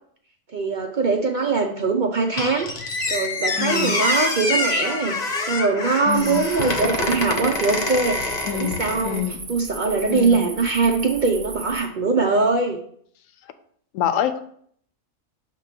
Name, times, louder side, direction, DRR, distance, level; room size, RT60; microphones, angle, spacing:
voice 1, 0.5-2.7 3.1-5.2 5.4-9.2 9.5-12.8, right 4 dB, 55° right, 3 dB, 0.5 m, -22 dB
Squeak, 2.4-9.2, left 2 dB, 35° left, 0.8 m, -26 dB
voice 2, 3.6-4.0 6.1-6.4 8.4-9.4 10.1-10.5 13.9-14.4, left 9 dB, 70° left, 11 dB, 1.0 m, -26 dB
sound 1, 6.1-11.9, right 3 dB, 30° right, 0.8 m, -37 dB
6.6 x 3.0 x 5.7 m, 0.63 s
omnidirectional pair, 1.5 m